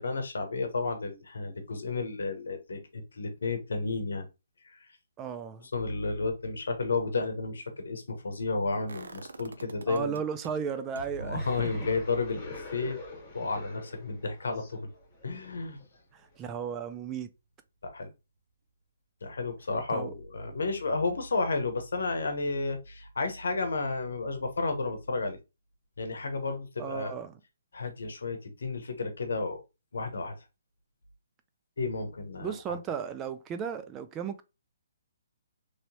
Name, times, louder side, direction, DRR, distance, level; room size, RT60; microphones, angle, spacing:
voice 1, 0.0-4.3 4.6-4.9 5.6-10.2 11.2-13.0 13.3-14.9 15.2-15.8 17.8-18.1 19.2-25.4 26.0-27.2 27.7-29.6 29.9-30.4 31.8-32.8, left 3 dB, 75° left, 0.9 m, -32 dB
voice 2, 5.2-5.7 9.9-11.9 16.1-17.3 19.9-20.1 26.8-27.4 32.4-34.4, right 7 dB, 20° right, 0.3 m, -35 dB
sound 1, 8.9-10.5 10.9-16.8 17.1-17.2, right 4 dB, 80° right, 0.5 m, -48 dB
sound 2, 11.4-16.4, left 3 dB, 25° left, 1.4 m, -46 dB
3.1 x 2.9 x 2.7 m
hypercardioid pair, 145°, 0 cm